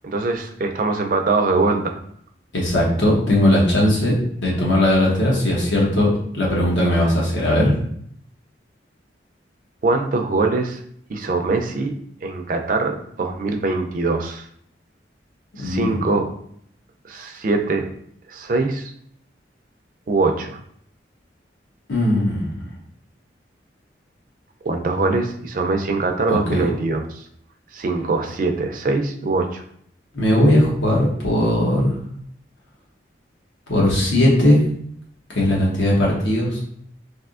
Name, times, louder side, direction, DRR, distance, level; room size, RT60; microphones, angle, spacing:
voice 1, 0.0-1.9 9.8-10.8 11.1-11.9 12.2-14.5 15.6-16.3 17.1-17.9 18.3-18.9 20.1-20.6 24.6-27.2 27.7-29.6, right 3 dB, 45° right, 4 dB, 0.4 m, -22 dB
voice 2, 2.5-4.1 4.4-6.1 6.3-7.7 15.6-15.9 21.9-22.5 26.3-26.6 30.1-31.9 33.7-34.6 35.3-36.6, left 1 dB, 85° left, -4 dB, 1.1 m, -18 dB
3.3 x 2.6 x 2.4 m, 0.66 s
head